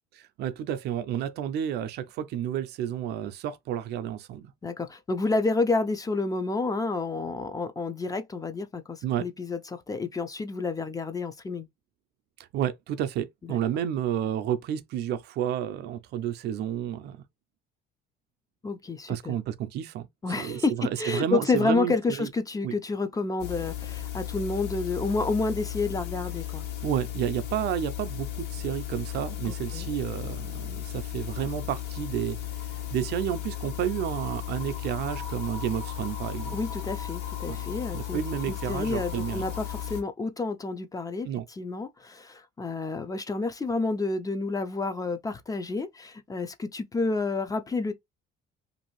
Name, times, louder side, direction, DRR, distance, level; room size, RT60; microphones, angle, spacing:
voice 1, 0.1-4.5 9.0-9.3 12.5-17.2 19.1-20.1 20.4-22.3 22.6-22.8 26.8-32.4 32.9-36.6 37.5-37.6 37.9-39.5 41.2-41.4, right 10 dB, 60° right, 0.5 m, -31 dB
voice 2, 4.6-11.7 13.5-13.6 18.6-19.4 20.2-26.6 29.5-29.9 36.5-38.2 38.5-41.3 41.6-47.9, left 3 dB, 20° left, 0.4 m, -29 dB
sound 1, 23.4-40.0, left 12 dB, 60° left, 1.1 m, -35 dB
2.6 x 2.4 x 3.0 m
supercardioid pair, 100°, 19 cm